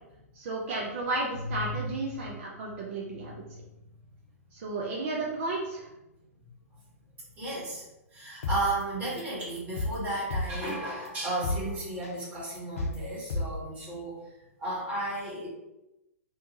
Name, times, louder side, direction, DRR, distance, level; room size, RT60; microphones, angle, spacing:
voice 1, 0.4-3.4 4.5-5.8, right 2 dB, 45° right, -4 dB, 0.6 m, -33 dB
voice 2, 1.4-2.3 2.7-2.8 3.1-3.6 7.4-7.8 8.1-14.3 14.6-15.5, right 1 dB, 15° right, -8 dB, 1.1 m, -34 dB
sound 1, 8.4-8.6 9.0-9.2 9.6-10.7 11.1-11.2 11.4-11.6 12.0-12.2 12.6-13.0 13.3-13.4, left 2 dB, 65° left, 0.4 m, -30 dB
2.7 x 2.2 x 2.9 m, 0.91 s
figure-of-eight pair, 110°, 8 cm